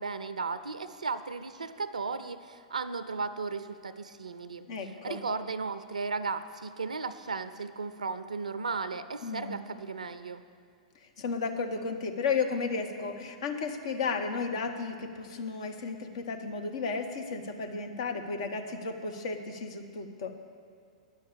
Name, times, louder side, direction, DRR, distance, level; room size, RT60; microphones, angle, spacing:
voice 1, 0.0-10.4, right 4 dB, 75° right, 12 dB, 0.4 m, -35 dB
voice 2, 4.7-5.2 9.2-9.6 11.2-20.3, left 4 dB, 55° left, 5 dB, 1.0 m, -33 dB
10.5 x 6.3 x 8.1 m, 2.2 s
figure-of-eight pair, 105°, 4 cm